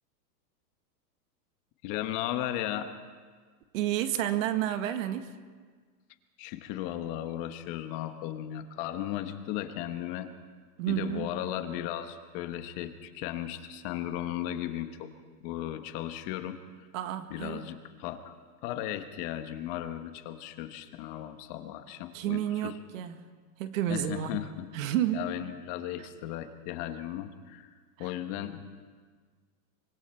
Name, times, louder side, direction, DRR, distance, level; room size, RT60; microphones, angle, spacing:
voice 1, 1.8-2.9 6.4-10.3 10.9-15.1 15.4-16.6 17.3-18.3 18.6-22.7 23.9-24.7 25.1-27.7 28.0-28.7, left 12 dB, 35° left, 8 dB, 1.1 m, -36 dB
voice 2, 3.7-5.4 10.8-11.3 16.9-17.7 22.1-23.2 23.6-24.4 24.7-25.3 28.0-28.1, right 11 dB, 55° right, 9 dB, 1.5 m, -30 dB
24.5 x 23.5 x 4.4 m, 1.6 s
supercardioid pair, 150°, 49 cm